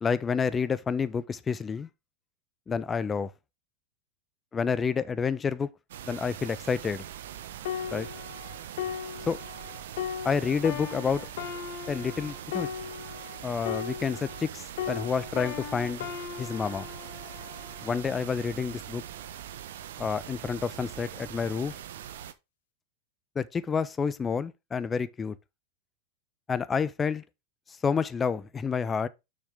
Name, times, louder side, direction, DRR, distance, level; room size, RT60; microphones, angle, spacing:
voice 1, 0.0-1.9 2.7-3.3 4.5-5.7 6.0-7.0 7.9-8.1 9.3-9.4 10.2-11.3 11.9-12.7 13.4-16.1 16.4-16.9 17.8-19.0 20.0-21.8 23.3-25.4 26.5-27.2 27.8-29.1, left 6 dB, 20° left, 0.8 m, -29 dB
sound 1, 5.9-22.3, right 10 dB, 75° right, 0.9 m, -42 dB
sound 2, 7.7-14.5 14.8-18.4 19.0-19.2, left 8 dB, 70° left, 1.3 m, -37 dB
6.5 x 6.2 x 3.6 m
hypercardioid pair, 105°, 0 cm